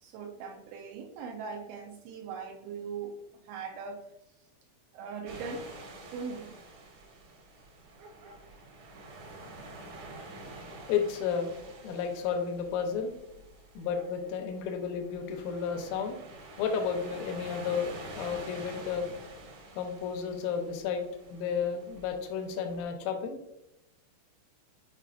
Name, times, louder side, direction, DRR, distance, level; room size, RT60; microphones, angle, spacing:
voice 1, 0.0-4.4 4.9-5.7 6.1-6.6, right 5 dB, 85° right, 1 dB, 2.5 m, -40 dB
sound 1, 5.3-22.8, right 2 dB, 60° right, 1.8 m, -48 dB
voice 2, 10.7-11.5 11.8-13.1 13.8-16.2 16.6-19.1 19.7-23.4, left 6 dB, 85° left, 4 dB, 3.4 m, -32 dB
8.1 x 5.4 x 2.4 m, 0.87 s
omnidirectional pair, 5.9 m